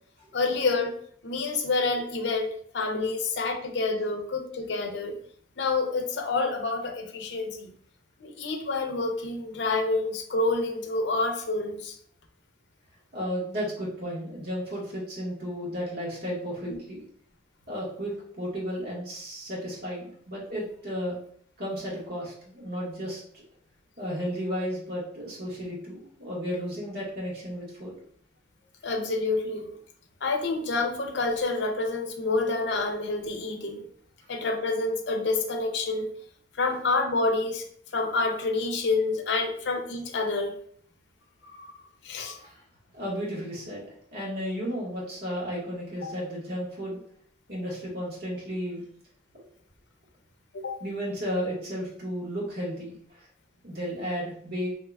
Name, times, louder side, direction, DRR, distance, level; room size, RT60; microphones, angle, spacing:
voice 1, 0.3-0.9 1.2-5.1 5.6-7.7 8.2-12.0 16.7-16.8 28.8-29.7 30.2-33.8 34.3-36.1 36.6-37.7 37.9-40.5 41.4-41.7 42.0-42.4 50.5-50.8, left 3 dB, 60° left, 5 dB, 0.6 m, -28 dB
voice 2, 13.1-17.0 17.7-21.2 21.6-23.2 24.0-27.9 42.4-42.6 42.9-47.0 47.5-48.8 50.8-53.2 53.6-54.7, equal, 55° right, -5 dB, 1.4 m, -33 dB
3.6 x 2.8 x 2.3 m, 0.62 s
head